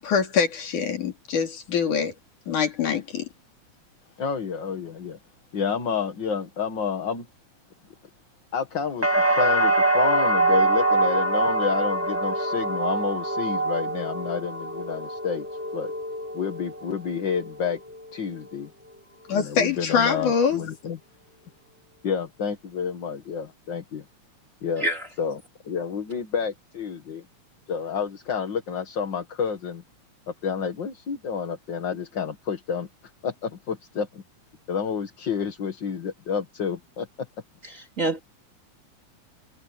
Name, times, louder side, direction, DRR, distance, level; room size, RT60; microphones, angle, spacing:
voice 1, 0.0-2.1 2.5-3.3 19.3-20.6, left 6 dB, 75° left, 4.5 m, -24 dB
voice 2, 4.2-5.2 5.5-7.3 8.5-15.5 15.7-15.9 16.3-17.8 18.1-18.7 19.3-21.0 22.0-24.0 24.6-24.9 25.2-27.2 27.7-29.8 30.3-32.9 33.2-34.2 34.7-37.3, left 6 dB, 40° left, 2.0 m, -29 dB
sound 1, 9.0-16.9 17.3-18.0, right 2 dB, 5° right, 2.2 m, -24 dB
voice 3, 37.6-38.2, right 2 dB, 25° right, 3.2 m, -27 dB
omnidirectional pair, 3.6 m